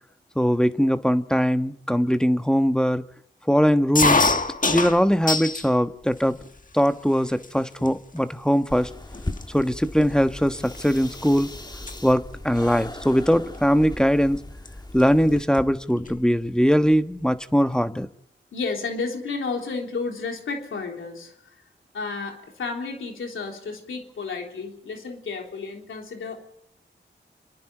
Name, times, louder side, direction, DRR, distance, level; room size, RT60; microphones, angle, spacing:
voice 1, 0.3-3.0 3.5-4.3 4.7-6.4 6.7-8.9 9.5-11.5 12.0-14.4 14.9-18.1, equal, 5° left, 9 dB, 1.3 m, -21 dB
sound 1, 4.0-5.7 6.1-6.8 7.4-7.5 7.8-8.2 8.8-8.9 9.1-11.4 11.7-12.0 13.3-13.6 14.7-14.8 15.0-15.1 15.4-16.2, left 3 dB, 40° left, 1.6 m, -25 dB
sound 2, 8.7-15.4, left 2 dB, 20° left, 1.6 m, -38 dB
voice 2, 18.5-21.6 21.9-26.4, left 4 dB, 90° left, 2 dB, 3.5 m, -32 dB
29.0 x 10.5 x 9.0 m, 0.77 s
cardioid pair, 40°, 20 cm